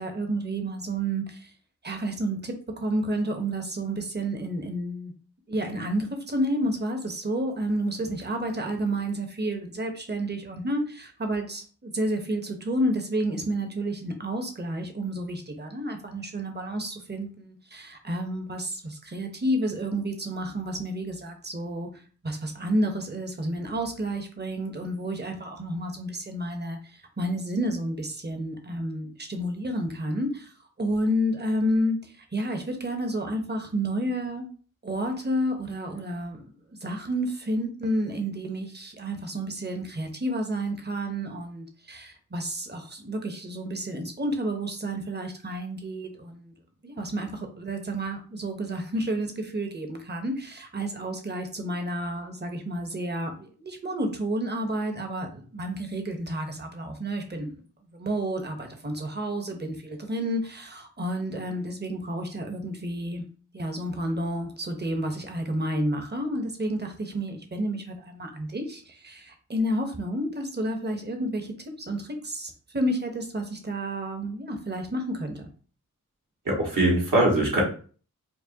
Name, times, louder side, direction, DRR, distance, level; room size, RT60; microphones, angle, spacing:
voice 1, 0.0-1.5 1.8-5.1 5.5-21.9 22.2-26.8 27.2-30.5 30.8-34.5 34.8-36.5 36.8-46.5 46.8-57.6 57.9-63.2 63.5-75.5, right 1 dB, 30° right, 5 dB, 0.9 m, -30 dB
voice 2, 76.4-77.6, right 1 dB, 75° right, -4 dB, 1.7 m, -22 dB
4.6 x 2.3 x 2.8 m, 0.41 s
cardioid pair, 55°, 33 cm